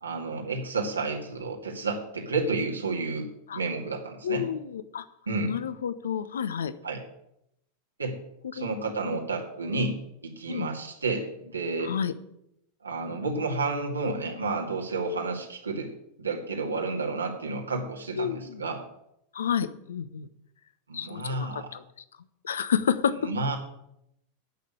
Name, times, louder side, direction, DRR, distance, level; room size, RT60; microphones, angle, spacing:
voice 1, 0.0-3.3 3.5-4.5 5.3-5.6 6.8-7.0 8.0-8.2 8.5-12.0 12.8-15.9 16.2-18.8 20.9-21.7 23.1-23.6, right 3 dB, 85° right, 0 dB, 2.3 m, -31 dB
voice 2, 4.2-5.0 5.4-6.7 8.6-8.7 9.0-9.2 10.5-10.7 11.8-12.1 18.2-18.6 19.3-20.3 20.9-21.8 22.4-23.2, left 8 dB, 75° left, 13 dB, 0.8 m, -30 dB
9.2 x 6.7 x 8.7 m, 0.79 s
figure-of-eight pair, 90°, 0 cm